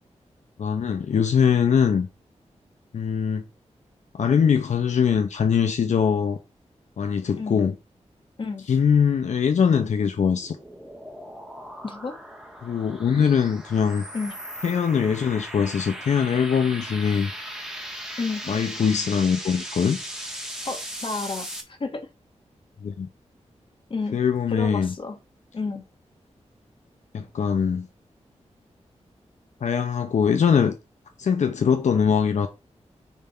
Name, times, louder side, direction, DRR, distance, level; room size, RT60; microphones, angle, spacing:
voice 1, 0.6-2.1 2.9-3.4 4.1-6.4 7.0-7.8 8.7-10.6 12.6-14.0 14.6-17.3 18.5-20.0 22.8-23.1 24.1-24.9 27.1-27.9 29.6-30.7 31.2-32.5, left 7 dB, 80° left, 0.7 m, -22 dB
voice 2, 8.4-8.7 11.8-12.2 14.1-14.3 18.2-18.4 20.6-22.1 23.9-24.2 24.5-25.2 25.5-25.8, left 4 dB, 45° left, 1.6 m, -31 dB
sound 1, 10.0-21.6, right 1 dB, 5° right, 1.6 m, -38 dB
9.3 x 3.6 x 4.3 m
wide cardioid pair, 150°, 12 cm